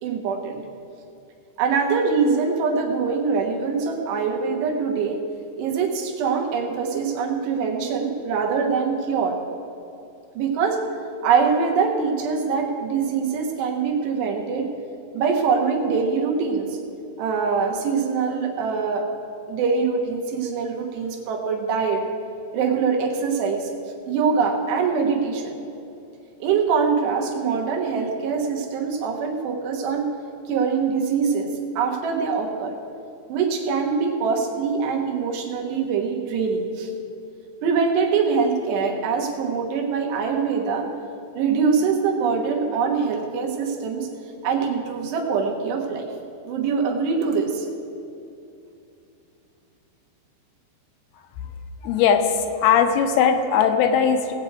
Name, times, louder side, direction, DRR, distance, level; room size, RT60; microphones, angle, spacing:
voice 1, 0.0-0.6 1.6-5.2 5.6-9.4 10.4-10.8 11.2-14.7 15.1-16.8 17.2-19.0 19.5-22.0 22.5-23.7 24.1-25.6 26.4-30.1 30.5-32.7 33.3-36.9 37.6-40.9 41.4-44.1 44.4-46.1 46.5-47.7, right 5 dB, 90° right, 1 dB, 3.5 m, -23 dB
voice 2, 51.8-54.3, left 7 dB, 85° left, 6 dB, 2.7 m, -19 dB
19.0 x 8.1 x 4.7 m, 2.7 s
omnidirectional pair, 4.7 m